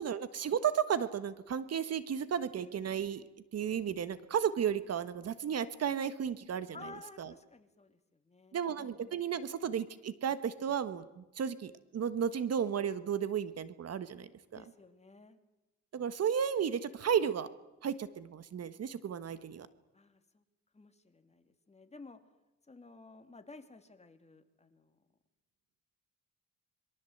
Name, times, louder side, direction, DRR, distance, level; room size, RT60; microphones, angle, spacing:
voice 1, 0.0-3.2 3.5-6.8 7.2-7.3 8.5-14.6 15.9-17.5 17.8-19.7, right 8 dB, 55° right, 13 dB, 1.5 m, -33 dB
voice 2, 6.7-9.2 14.5-15.4 19.9-20.4 20.7-22.2 22.7-25.0, left 3 dB, 20° left, 8 dB, 2.7 m, -54 dB
27.0 x 23.0 x 8.0 m, 1.0 s
cardioid pair, 90°, 30 cm